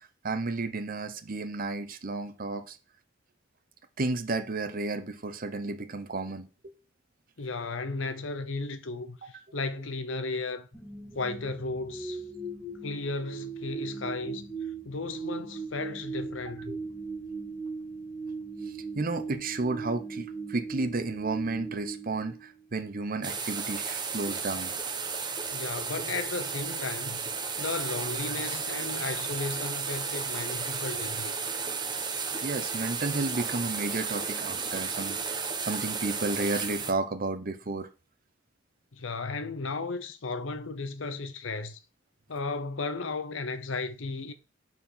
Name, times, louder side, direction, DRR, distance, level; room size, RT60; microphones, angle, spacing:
voice 1, 0.2-2.8 4.0-6.7 9.2-9.3 16.5-16.8 18.9-24.7 26.1-26.2 32.4-37.9, right 3 dB, 45° right, 0.9 m, -32 dB
voice 2, 7.4-10.7 11.1-12.2 12.8-14.5 14.8-16.8 25.5-27.2 27.6-31.3 38.9-41.8 42.3-44.3, left 3 dB, 75° left, 0.8 m, -35 dB
sound 1, 10.7-22.9, right 4 dB, 5° left, 1.4 m, -39 dB
sound 2, 23.2-36.9, right 5 dB, 25° right, 1.1 m, -33 dB
8.1 x 4.5 x 5.6 m
head